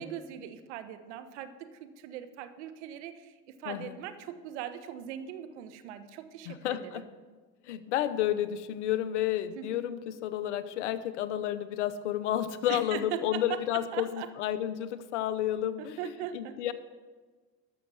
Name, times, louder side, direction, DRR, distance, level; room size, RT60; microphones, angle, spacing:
voice 1, 0.0-7.0 9.6-9.8 12.7-14.3 16.0-16.6, right 10 dB, 80° right, 10 dB, 1.1 m, -40 dB
voice 2, 3.7-4.0 6.5-7.0 7.6-16.7, left 11 dB, 85° left, 13 dB, 0.8 m, -31 dB
12.5 x 6.5 x 7.0 m, 1.4 s
hypercardioid pair, 80°, 34 cm